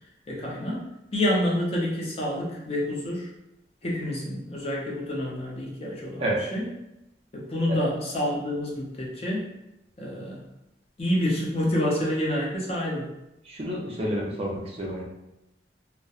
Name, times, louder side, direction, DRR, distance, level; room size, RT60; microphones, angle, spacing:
voice 1, 0.3-0.9 1.1-3.3 3.8-6.2 6.5-6.6 7.3-9.5 10.0-10.4 11.0-13.1, left 1 dB, 35° left, -3 dB, 0.5 m, -28 dB
voice 2, 13.4-15.0, right 1 dB, 35° right, -3 dB, 0.5 m, -29 dB
2.8 x 2.1 x 2.3 m, 0.90 s
head